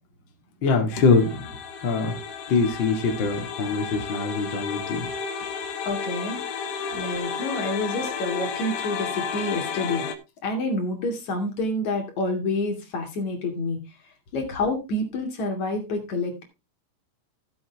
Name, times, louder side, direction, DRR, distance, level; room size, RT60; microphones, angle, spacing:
voice 1, 0.6-1.6 1.8-2.2 2.5-5.1, left 4 dB, 65° left, 2 dB, 1.2 m, -23 dB
sound 1, 0.9-10.1, left 6 dB, 80° left, 1.8 m, -32 dB
voice 2, 5.8-6.4 6.9-10.0 10.4-13.8 14.3-16.4, left 2 dB, 45° left, 2 dB, 3.2 m, -28 dB
14.5 x 8.1 x 3.6 m, 0.26 s
omnidirectional pair, 5.9 m